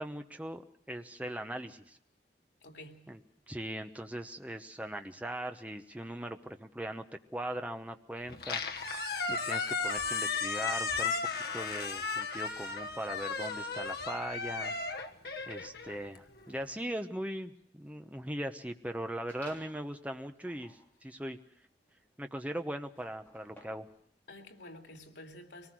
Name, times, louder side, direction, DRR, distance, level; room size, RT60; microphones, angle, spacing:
voice 1, 0.0-2.0 3.1-3.2 3.5-7.0 7.3-8.6 9.3-11.1 11.5-14.7 15.5-21.4 22.2-23.9, right 1 dB, 10° right, 1.0 m, -40 dB
voice 2, 2.6-3.1 24.3-25.7, left 1 dB, 90° left, 2.8 m, -50 dB
Squeak, 8.3-16.5, left 4 dB, 60° left, 1.2 m, -35 dB
sound 1, 19.3-19.9 20.4-24.0, equal, 10° left, 3.5 m, -58 dB
24.0 x 19.0 x 6.3 m
head